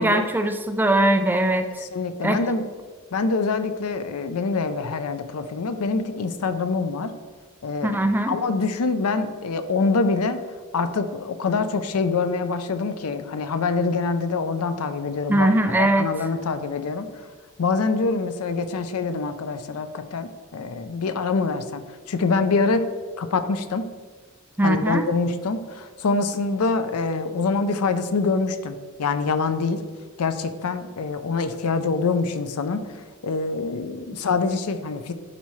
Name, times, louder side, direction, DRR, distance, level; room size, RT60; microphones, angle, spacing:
voice 1, 0.0-1.8 2.2-2.4 7.8-8.4 15.3-16.1 24.6-25.0, right 1 dB, 10° right, 6 dB, 0.4 m, -21 dB
voice 2, 1.9-2.7 3.1-7.1 7.6-8.0 8.3-10.4 10.7-15.5 15.8-17.1 17.6-22.9 23.2-23.8 24.6-29.8 30.2-35.1, left 4 dB, 90° left, 10 dB, 0.5 m, -25 dB
10.5 x 4.2 x 3.2 m, 1.5 s
head